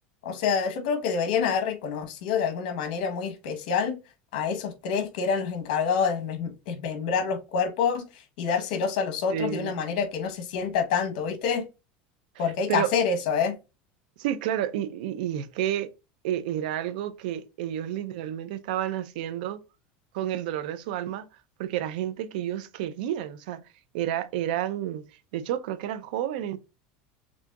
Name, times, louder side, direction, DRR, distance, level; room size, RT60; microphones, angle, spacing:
voice 1, 0.2-4.0 4.3-8.0 8.4-11.6 12.4-13.6, left 6 dB, 80° left, 1.1 m, -27 dB
voice 2, 9.3-10.0 12.4-12.9 14.2-15.9 16.2-19.6 20.1-21.3 21.6-23.6 23.9-25.1 25.3-26.6, right 11 dB, 80° right, 0.6 m, -30 dB
6.1 x 2.8 x 2.4 m
supercardioid pair, 135°, 5 cm